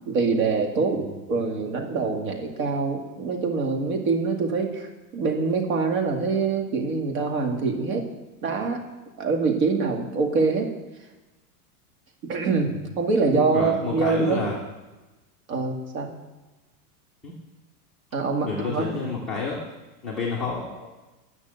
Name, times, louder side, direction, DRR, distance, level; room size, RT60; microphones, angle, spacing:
voice 1, 0.1-8.0 8.4-8.8 9.2-10.7 12.2-14.5 15.5-16.2 18.1-19.0, right 4 dB, 60° right, 2 dB, 2.3 m, -25 dB
voice 2, 13.5-14.6 17.2-17.3 18.4-19.6 20.0-20.9, left 4 dB, ahead, -7 dB, 0.4 m, -30 dB
10.5 x 6.3 x 7.9 m, 1.1 s
supercardioid pair, 175°, 47 cm